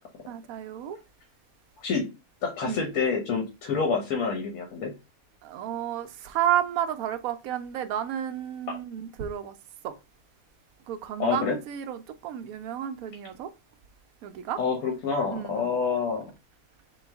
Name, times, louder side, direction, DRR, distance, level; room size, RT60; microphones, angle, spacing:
voice 1, 0.3-1.0 2.6-2.8 5.4-9.5 9.8-9.9 10.9-13.5 14.2-14.6 15.3-15.7, right 10 dB, 75° right, 1.0 m, -31 dB
voice 2, 2.4-4.9 11.2-11.6 14.6-16.3, left 5 dB, 80° left, 1.3 m, -27 dB
3.8 x 2.7 x 3.3 m
omnidirectional pair, 1.5 m